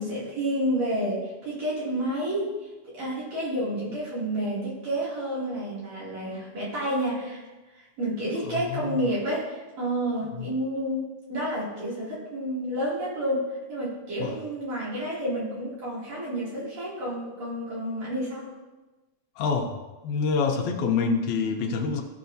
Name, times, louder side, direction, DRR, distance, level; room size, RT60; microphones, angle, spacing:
voice 1, 0.0-7.4 7.7-18.5, right 1 dB, 65° right, -8 dB, 3.8 m, -30 dB
voice 2, 8.5-9.1 10.4-10.5 14.2-14.4 19.4-19.7 20.0-22.0, left 5 dB, 80° left, 3 dB, 2.2 m, -26 dB
14.0 x 6.0 x 2.7 m, 1.2 s
omnidirectional pair, 3.4 m